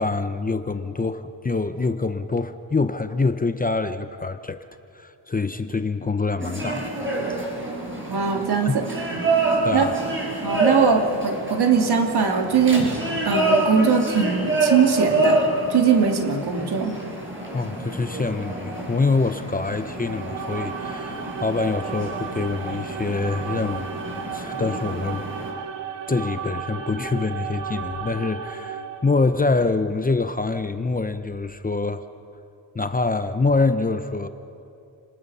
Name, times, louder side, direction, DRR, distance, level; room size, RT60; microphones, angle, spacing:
voice 1, 0.0-4.6 4.9-6.9 7.3-7.4 8.6-8.8 9.6-10.0 17.5-23.9 24.2-25.3 26.1-32.0 32.7-34.3, left 3 dB, 20° left, 9 dB, 0.8 m, -25 dB
sound 1, 6.4-25.5, right 2 dB, 25° right, 6.1 m, -27 dB
voice 2, 8.1-8.8 9.1-9.2 9.7-9.9 10.4-12.9 13.2-16.9, right 6 dB, 60° right, 3 dB, 2.6 m, -21 dB
sound 2, 19.9-29.4, right 7 dB, 90° right, 1.4 m, -34 dB
29.5 x 20.0 x 5.6 m, 2.7 s
cardioid pair, 105°, 43 cm